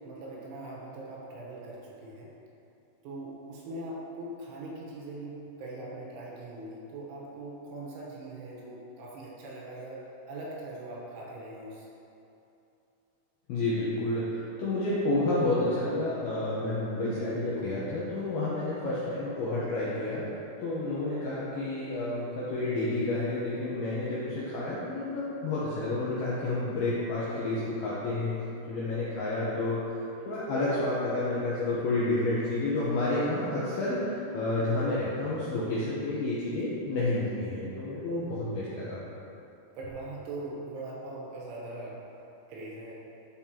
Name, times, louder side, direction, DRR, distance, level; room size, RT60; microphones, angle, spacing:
voice 1, 0.0-2.3 3.0-11.9 28.6-28.9 39.8-42.1 42.5-43.0, right 2 dB, 75° right, -4 dB, 3.4 m, -41 dB
voice 2, 13.5-20.3 20.6-28.4 28.7-39.0, left 2 dB, 80° left, -9 dB, 2.3 m, -30 dB
11.5 x 5.4 x 2.9 m, 2.8 s
omnidirectional pair, 5.7 m